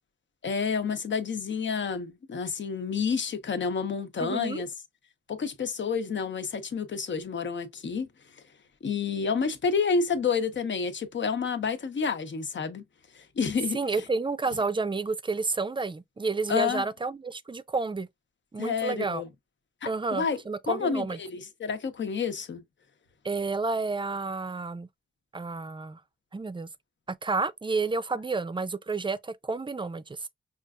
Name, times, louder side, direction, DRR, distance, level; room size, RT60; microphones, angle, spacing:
voice 1, 0.4-4.7 5.3-8.1 8.8-12.8 13.1-13.8 16.5-16.8 18.6-19.3 19.8-20.4 20.7-22.6, left 5 dB, 60° left, 0.9 m, -29 dB
voice 2, 4.2-4.6 13.7-18.1 18.5-19.2 19.8-21.2 23.2-24.9 25.3-26.0 26.3-26.7 27.1-30.3, right 3 dB, 25° right, 0.5 m, -30 dB
5.3 x 2.5 x 2.4 m
cardioid pair, 70°, 21 cm